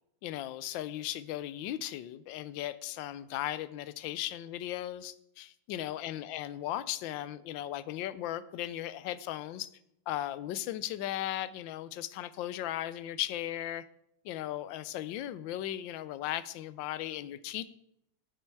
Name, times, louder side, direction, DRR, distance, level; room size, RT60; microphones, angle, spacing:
voice 1, 0.2-9.7 10.1-13.8 14.2-17.7, left 13 dB, 80° left, 16 dB, 1.3 m, -37 dB
8.8 x 8.8 x 4.6 m, 0.77 s
omnidirectional pair, 2.1 m